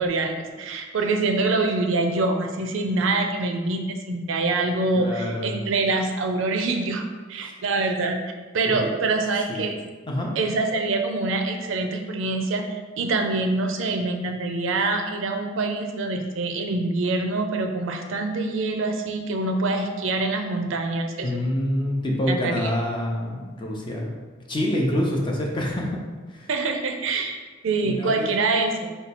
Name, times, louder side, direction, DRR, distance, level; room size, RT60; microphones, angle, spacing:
voice 1, 0.0-8.2 8.5-9.8 10.4-21.4 22.3-22.7 26.5-27.4 27.6-28.9, right 3 dB, 70° right, 4 dB, 0.4 m, -25 dB
voice 2, 4.9-5.6 7.4-7.5 8.6-8.9 9.5-9.7 10.1-10.3 21.2-24.1 24.5-26.0 26.3-26.5 27.8-28.3, left 1 dB, 25° left, -1 dB, 0.6 m, -26 dB
4.2 x 2.3 x 4.1 m, 1.4 s
head